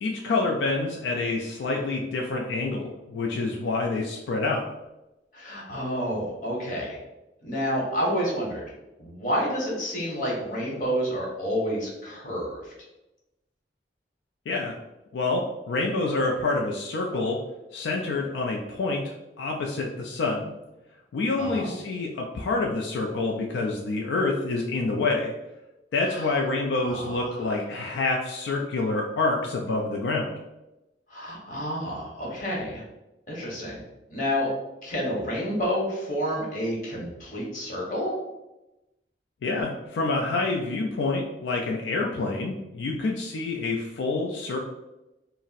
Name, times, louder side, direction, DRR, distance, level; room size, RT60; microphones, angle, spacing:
voice 1, 0.0-4.7 14.5-14.8 15.1-17.4 17.7-20.6 21.1-25.3 25.9-30.4 39.4-44.6, left 3 dB, 85° left, 0 dB, 0.3 m, -27 dB
voice 2, 5.3-7.0 7.4-8.6 9.0-12.7 21.4-21.7 26.1-26.3 26.8-27.1 31.1-32.8 33.3-33.8 34.1-34.5 34.8-38.1, equal, 45° left, -4 dB, 0.9 m, -29 dB
2.5 x 2.0 x 3.9 m, 0.98 s
head